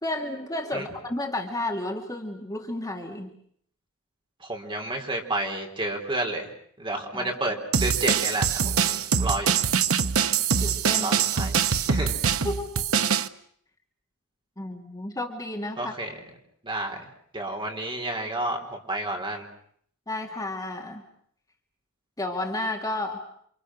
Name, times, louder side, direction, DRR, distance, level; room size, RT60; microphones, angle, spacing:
voice 1, 0.0-3.3 7.1-7.3 10.6-11.1 12.4-12.7 14.6-15.9 20.1-21.0 22.2-23.2, left 1 dB, 15° left, 2 dB, 2.4 m, -32 dB
voice 2, 4.4-6.5 6.8-9.6 11.0-11.6 11.9-12.2 15.8-16.2 16.6-17.1 17.3-19.5, right 2 dB, 20° right, 2 dB, 4.4 m, -30 dB
sound 1, 7.7-13.3, right 6 dB, 65° right, 1.0 m, -24 dB
29.5 x 26.5 x 6.5 m, 0.64 s
head